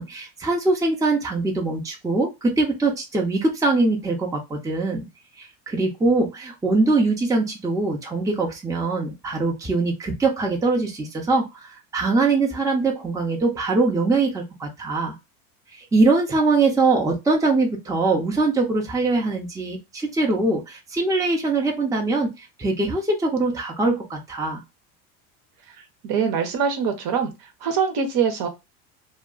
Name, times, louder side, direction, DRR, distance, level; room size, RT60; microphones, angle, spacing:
voice 1, 0.0-5.1 5.4-15.1 15.7-24.6, right 3 dB, 5° right, 0.8 m, -22 dB
voice 2, 26.0-27.3 27.6-28.5, right 6 dB, 50° right, 0.9 m, -23 dB
2.2 x 2.2 x 3.7 m
hypercardioid pair, 95°, 48 cm